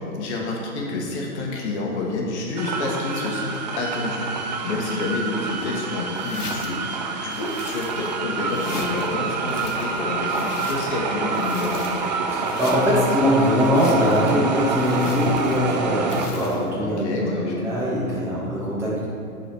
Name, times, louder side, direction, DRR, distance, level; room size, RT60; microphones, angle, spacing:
voice 1, 0.0-4.3 4.6-11.9 16.8-17.8, left 3 dB, 50° left, -1 dB, 1.4 m, -28 dB
sound 1, 2.6-16.3, right 4 dB, 30° right, 0.4 m, -27 dB
sound 2, 6.2-6.8 7.3-8.2 8.5-9.1 9.5-11.0 11.3-12.2 12.4-13.1 13.6-14.4 14.8-15.7 16.1-16.7, left 3 dB, 75° left, 1.3 m, -38 dB
voice 2, 12.3-17.1 17.4-19.1, left 1 dB, 5° right, -9 dB, 1.8 m, -22 dB
9.9 x 4.2 x 4.4 m, 2.4 s
hypercardioid pair, 130°, 45 cm